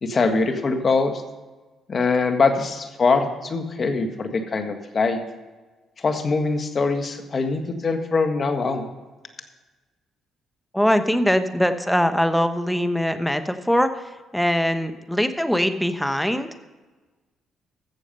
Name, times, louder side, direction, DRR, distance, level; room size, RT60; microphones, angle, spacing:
voice 1, 0.0-1.2 1.9-5.2 6.0-8.9, left 4 dB, 45° left, 7 dB, 1.6 m, -23 dB
voice 2, 10.7-13.9 14.3-16.5, equal, 5° left, 9 dB, 1.0 m, -22 dB
14.5 x 7.1 x 5.4 m, 1.3 s
supercardioid pair, 65°, 0 cm